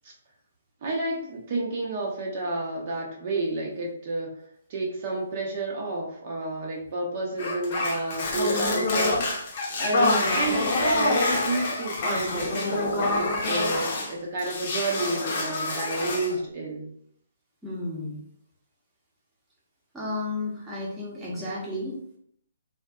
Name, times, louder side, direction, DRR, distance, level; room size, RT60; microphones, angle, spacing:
voice 1, 0.8-4.3 4.7-9.5 9.8-16.9, right 2 dB, 45° right, -3 dB, 0.6 m, -30 dB
sound 1, 7.4-14.1 14.4-16.3, left 2 dB, 45° left, 0.7 m, -26 dB
voice 2, 17.6-18.2 19.9-22.2, left 2 dB, 10° right, -7 dB, 0.8 m, -33 dB
2.5 x 2.4 x 2.2 m, 0.67 s
figure-of-eight pair, 140°, 0 cm